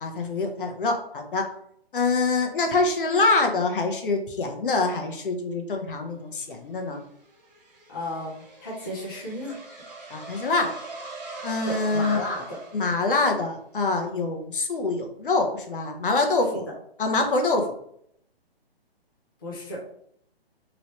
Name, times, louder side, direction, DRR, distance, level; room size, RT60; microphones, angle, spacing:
voice 1, 0.0-1.4 1.9-7.0 10.1-10.7 11.4-12.2 12.7-16.6 17.0-17.7, left 3 dB, 55° left, 4 dB, 0.7 m, -25 dB
sound 1, 6.5-13.6, right 3 dB, 40° right, 1.0 m, -42 dB
voice 2, 7.9-9.6 11.6-12.6 16.5-16.6 19.4-19.8, left 1 dB, 20° left, -5 dB, 0.5 m, -34 dB
3.0 x 3.0 x 2.9 m, 0.69 s
hypercardioid pair, 170°, 31 cm